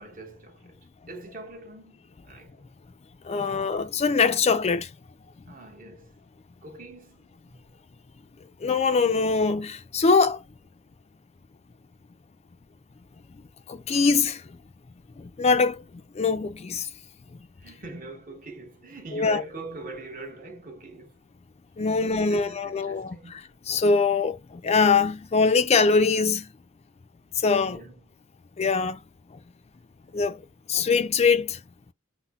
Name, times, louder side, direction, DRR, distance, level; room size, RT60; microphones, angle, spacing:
voice 1, 0.0-2.7 3.3-4.0 5.4-6.2 6.6-7.8 17.6-21.2 21.8-23.3 27.6-28.1, right 2 dB, 45° right, 1.2 m, -43 dB
voice 2, 3.2-4.9 8.6-10.4 13.7-14.4 15.2-15.8 16.2-16.9 19.1-19.4 21.8-23.2 23.7-26.5 27.4-27.8 28.6-29.0 30.1-30.4 30.7-31.6, left 4 dB, 30° left, 0.4 m, -23 dB
5.6 x 2.1 x 2.3 m
head